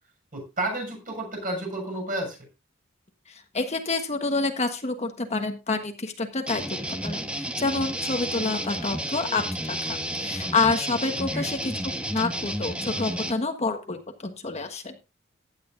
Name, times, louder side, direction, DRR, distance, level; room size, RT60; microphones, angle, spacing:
voice 1, 0.3-2.4 11.3-11.5, right 1 dB, 45° right, 2 dB, 6.6 m, -31 dB
voice 2, 3.3-14.9, left 3 dB, 35° left, 5 dB, 1.3 m, -28 dB
sound 1, 6.5-13.3, right 1 dB, 5° right, 1.2 m, -31 dB
16.0 x 10.5 x 2.6 m, 0.28 s
head